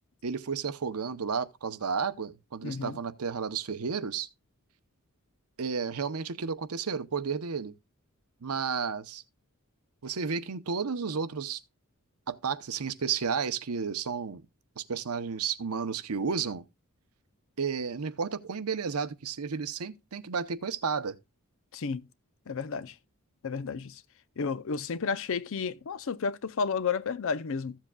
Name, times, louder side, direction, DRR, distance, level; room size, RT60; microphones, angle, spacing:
voice 1, 0.2-4.3 5.6-7.7 8.4-9.2 10.0-11.6 12.3-14.4 14.8-16.6 17.6-21.2, right 5 dB, 85° right, 0.8 m, -32 dB
voice 2, 2.6-3.0 21.7-22.0 22.5-22.9 23.4-24.0 24.4-27.8, left 5 dB, 65° left, 0.5 m, -32 dB
14.5 x 7.4 x 2.3 m
head